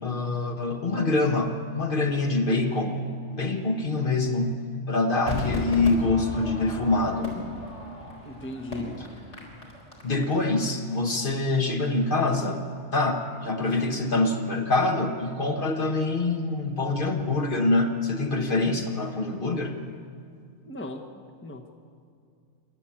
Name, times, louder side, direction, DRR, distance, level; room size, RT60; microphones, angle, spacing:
voice 1, 0.0-3.0 3.3-4.5 4.9-7.4 10.0-12.6 12.9-19.8, left 2 dB, 45° left, 4 dB, 1.5 m, -25 dB
Crowd / Fireworks, 5.3-10.6 10.9-11.0, equal, 75° left, 4.5 m, -35 dB
voice 2, 8.2-9.0 13.7-13.9 20.6-21.7, left 1 dB, 10° left, 4 dB, 1.1 m, -38 dB
26.5 x 12.0 x 8.7 m, 2.4 s
omnidirectional pair, 1.2 m